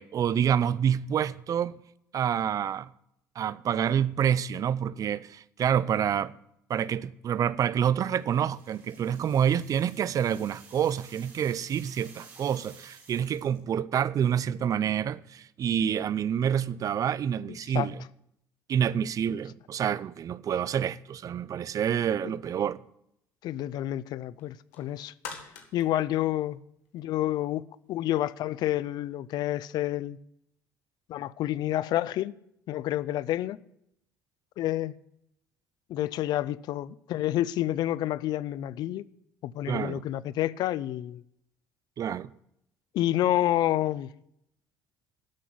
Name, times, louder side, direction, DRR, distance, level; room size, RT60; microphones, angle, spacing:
voice 1, 0.0-1.8 2.1-2.9 3.4-6.3 6.7-18.0 18.7-22.8 39.7-40.0 42.0-42.3, right 9 dB, 50° right, 0.5 m, -27 dB
sound 1, 8.1-13.7, right 4 dB, 80° right, 5.1 m, -53 dB
voice 2, 23.4-25.1 25.7-26.6 26.9-30.2 31.1-32.3 32.7-33.6 34.6-35.0 35.9-39.0 39.4-41.2 42.9-44.1, left 13 dB, 65° left, 0.5 m, -29 dB
sound 2, 24.4-27.2 27.6-27.7, left 6 dB, 85° left, 1.9 m, -45 dB
13.0 x 6.2 x 9.4 m
hypercardioid pair, 65°, 8 cm